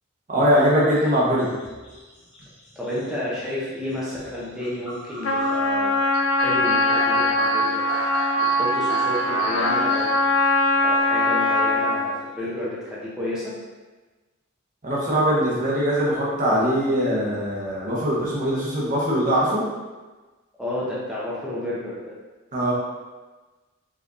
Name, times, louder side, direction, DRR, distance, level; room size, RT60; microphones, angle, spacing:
voice 1, 0.3-1.6 14.8-19.7 22.5-22.7, equal, 40° right, -6 dB, 1.1 m, -21 dB
sound 1, 0.6-10.3, left 1 dB, 60° left, 1.3 m, -35 dB
voice 2, 2.8-5.9 6.3-7.9 8.4-10.2 10.8-13.5 20.6-22.1, left 1 dB, 5° right, -9 dB, 0.7 m, -31 dB
Trumpet, 5.2-12.2, left 1 dB, 75° left, 0.5 m, -21 dB
5.0 x 3.4 x 2.7 m, 1.3 s
head